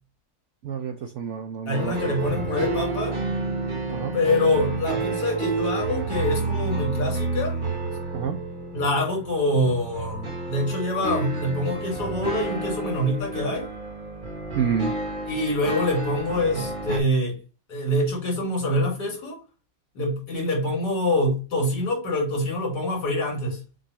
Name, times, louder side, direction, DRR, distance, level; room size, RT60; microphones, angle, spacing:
voice 1, 0.6-2.4 3.9-4.2 8.1-8.4 14.5-14.9, right 7 dB, 80° right, 0.6 m, -29 dB
voice 2, 1.7-3.2 4.1-7.6 8.7-13.6 15.3-17.4 17.7-19.4 20.0-23.6, left 1 dB, 65° left, 2.9 m, -25 dB
sound 1, 1.7-17.0, right 3 dB, 40° right, 0.8 m, -30 dB
6.4 x 2.7 x 3.0 m
omnidirectional pair, 1.9 m